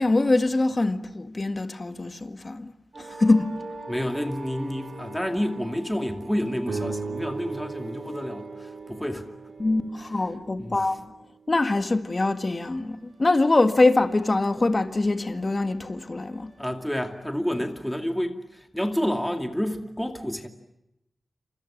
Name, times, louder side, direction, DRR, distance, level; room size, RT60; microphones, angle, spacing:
voice 1, 0.0-2.7 3.0-3.6 9.6-11.1 11.5-16.5, left 2 dB, 30° left, 1.8 m, -23 dB
sound 1, 2.9-10.5 12.4-17.7, right 2 dB, 40° right, 7.7 m, -45 dB
voice 2, 3.9-9.3 10.6-10.8 16.6-20.5, equal, 5° left, 2.5 m, -29 dB
sound 2, 6.6-11.1, right 4 dB, 70° right, 3.9 m, -37 dB
29.0 x 27.0 x 7.4 m
wide cardioid pair, 140°, 0 cm